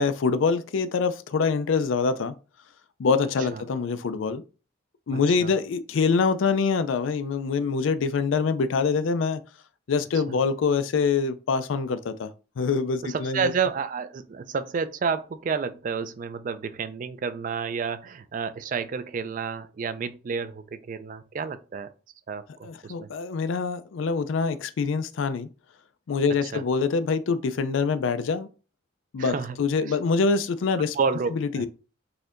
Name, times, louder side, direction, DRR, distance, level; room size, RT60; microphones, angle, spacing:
voice 1, 0.0-2.4 3.0-4.4 5.1-9.4 9.9-12.3 12.6-13.5 22.6-25.5 26.1-28.5 29.1-31.0 31.3-31.7, left 5 dB, 90° left, 0.4 m, -25 dB
voice 2, 5.1-5.5 10.3-10.4 13.0-21.9 22.3-23.1 26.5-26.6 29.2-29.6 31.0-31.7, right 5 dB, 40° right, 0.3 m, -30 dB
4.1 x 2.7 x 2.5 m
head